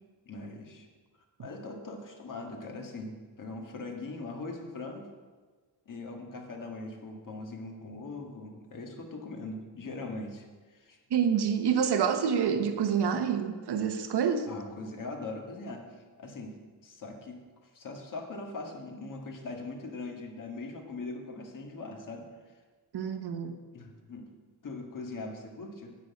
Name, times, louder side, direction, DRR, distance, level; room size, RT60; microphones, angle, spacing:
voice 1, 0.3-0.9 1.4-5.1 5.9-11.0 14.5-22.3 23.7-24.3 24.6-26.0, left 3 dB, 50° left, 2 dB, 1.9 m, -41 dB
voice 2, 11.1-14.5 22.9-23.6, right 7 dB, 70° right, 7 dB, 1.2 m, -27 dB
9.6 x 5.9 x 8.3 m, 1.4 s
cardioid pair, 120°, 41 cm